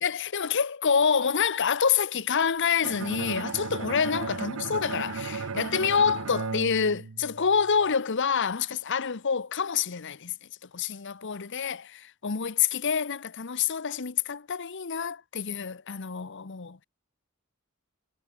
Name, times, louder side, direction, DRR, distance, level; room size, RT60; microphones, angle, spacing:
voice 1, 0.0-10.3 10.7-16.8, left 6 dB, 60° left, 0.9 m, -27 dB
Bowed string instrument, 2.8-7.8, right 4 dB, 80° right, 0.8 m, -35 dB
head